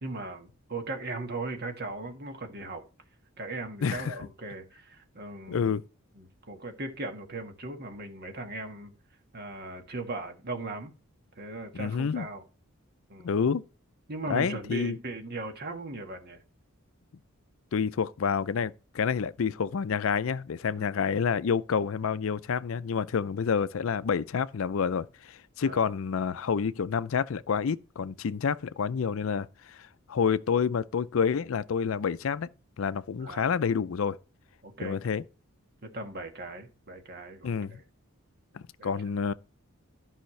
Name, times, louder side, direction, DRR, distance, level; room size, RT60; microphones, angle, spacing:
voice 1, 0.0-2.8 3.4-5.7 6.1-8.9 9.3-10.9 11.3-12.4 13.1-13.3 14.1-16.4 20.8-21.3 25.6-26.0 33.2-33.5 34.6-35.0 35.8-37.8 38.8-38.9, right 2 dB, 45° right, 1.6 m, -38 dB
voice 2, 3.8-4.1 5.5-5.8 11.7-12.3 13.2-13.6 14.3-15.0 17.7-32.5 32.8-34.2 34.8-35.2 37.4-37.8 38.5-39.3, left 6 dB, 65° left, 0.4 m, -28 dB
13.0 x 5.6 x 3.2 m
head